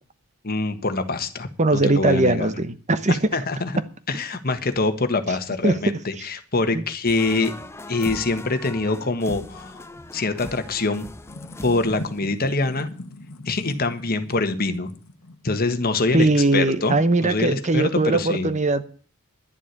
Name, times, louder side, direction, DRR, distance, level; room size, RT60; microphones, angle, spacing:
voice 1, 0.4-2.5 3.1-3.8 4.1-7.5 7.9-9.8 10.1-11.1 11.6-12.9 13.4-14.9 15.4-16.9 17.2-18.5, left 3 dB, 45° left, 1.4 m, -24 dB
voice 2, 1.6-3.3 5.6-6.0 6.7-6.8 16.1-18.8, right 2 dB, 35° right, 0.9 m, -20 dB
sound 1, 7.1-12.2, left 2 dB, 10° left, 0.6 m, -39 dB
sound 2, 7.7-17.6, left 1 dB, 70° left, 1.3 m, -42 dB
11.0 x 7.5 x 9.8 m
head